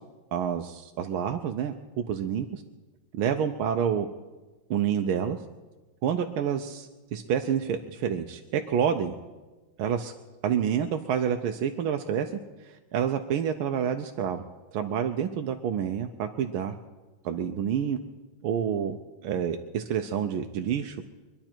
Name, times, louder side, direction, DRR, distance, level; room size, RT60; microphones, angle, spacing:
voice 1, 0.3-2.6 3.1-4.1 4.7-5.4 6.0-9.1 9.8-10.1 10.4-12.3 12.6-14.4 14.7-16.7 17.2-18.0 18.4-19.0 19.2-21.1, right 8 dB, 90° right, 5 dB, 1.6 m, -28 dB
24.5 x 11.0 x 4.5 m, 1.2 s
omnidirectional pair, 2.2 m